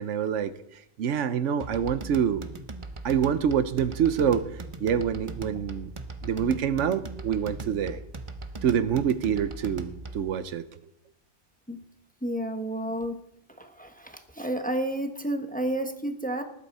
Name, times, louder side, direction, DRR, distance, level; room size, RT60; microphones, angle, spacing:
voice 1, 0.0-2.4 3.0-5.9 6.2-8.0 8.6-10.7, right 8 dB, 85° right, 13 dB, 1.1 m, -26 dB
sound 1, 1.6-10.3, right 3 dB, 30° right, 0.8 m, -39 dB
voice 2, 12.2-13.2 13.6-16.4, right 1 dB, 10° left, 6 dB, 1.0 m, -31 dB
18.5 x 11.5 x 4.2 m, 0.81 s
omnidirectional pair, 1.2 m